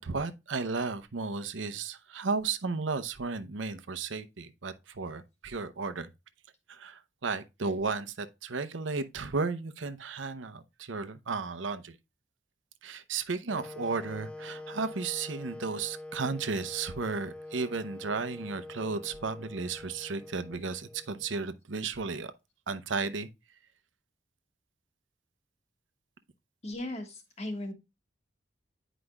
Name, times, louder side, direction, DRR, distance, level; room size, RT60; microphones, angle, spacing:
voice 1, 0.0-6.1 6.7-12.0 12.8-22.3 22.7-23.3, right 4 dB, 85° right, 0.8 m, -34 dB
Wind instrument woodwind instrument, 13.5-21.4, left 2 dB, 5° left, 0.3 m, -45 dB
voice 2, 26.6-27.7, left 1 dB, 35° left, 1.4 m, -37 dB
9.7 x 5.0 x 2.3 m
head